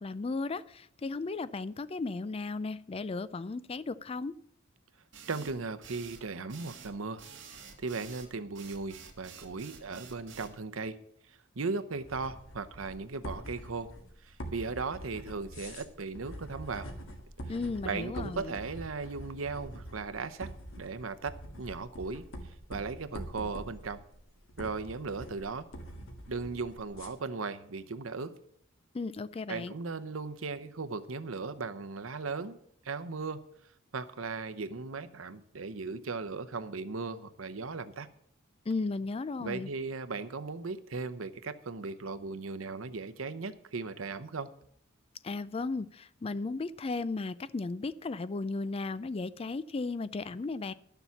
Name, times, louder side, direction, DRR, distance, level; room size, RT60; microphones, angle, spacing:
voice 1, 0.0-4.4 17.5-18.5 28.9-29.7 38.7-39.7 45.2-50.7, left 3 dB, 30° left, 16 dB, 0.4 m, -35 dB
sound 1, 5.1-10.6, right 6 dB, 65° right, 2.1 m, -49 dB
voice 2, 5.3-7.2 7.8-11.0 11.3-13.9 14.2-16.9 17.8-20.5 20.8-22.2 22.7-24.0 24.6-25.7 26.3-28.3 29.5-32.6 32.8-33.4 33.9-38.1 39.4-44.5, right 4 dB, 85° right, 12 dB, 0.8 m, -37 dB
sound 2, 12.0-27.1, right 1 dB, 90° left, 2.0 m, -45 dB
12.0 x 7.0 x 7.0 m, 0.69 s
head